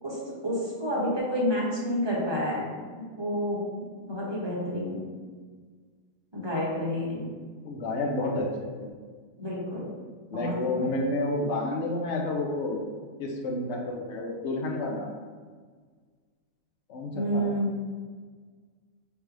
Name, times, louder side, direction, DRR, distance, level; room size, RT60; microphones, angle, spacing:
voice 1, 0.0-2.7 3.2-3.7 4.0-5.0 6.3-7.2 9.4-9.9 10.3-10.9 17.1-17.8, equal, 25° right, -6 dB, 0.6 m, -29 dB
voice 2, 7.6-8.9 10.3-12.8 13.2-15.1 16.9-17.5, left 2 dB, 70° left, 0 dB, 0.6 m, -30 dB
3.3 x 3.3 x 4.7 m, 1.5 s
omnidirectional pair, 1.9 m